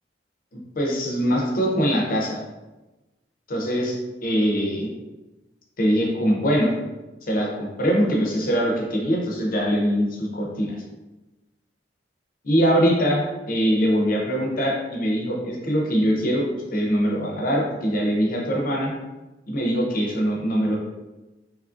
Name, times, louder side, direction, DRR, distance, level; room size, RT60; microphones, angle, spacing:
voice 1, 0.8-2.4 3.5-4.9 5.8-6.7 7.2-10.8 12.4-18.9 19.5-20.8, equal, 55° left, -1 dB, 0.6 m, -22 dB
2.9 x 2.5 x 2.4 m, 1.1 s
head